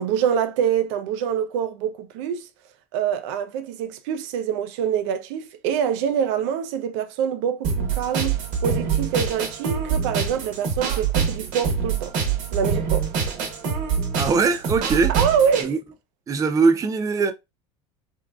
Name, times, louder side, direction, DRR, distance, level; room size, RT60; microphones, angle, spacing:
voice 1, 0.0-2.5 2.9-12.1 12.5-13.1 15.1-15.8, right 8 dB, 80° right, 0.5 m, -25 dB
sound 1, 7.6-15.6, right 6 dB, 60° right, 1.0 m, -25 dB
voice 2, 14.2-15.1 15.6-15.8 16.3-17.3, right 4 dB, 20° right, 0.4 m, -21 dB
3.6 x 2.2 x 2.2 m
supercardioid pair, 115°, 15 cm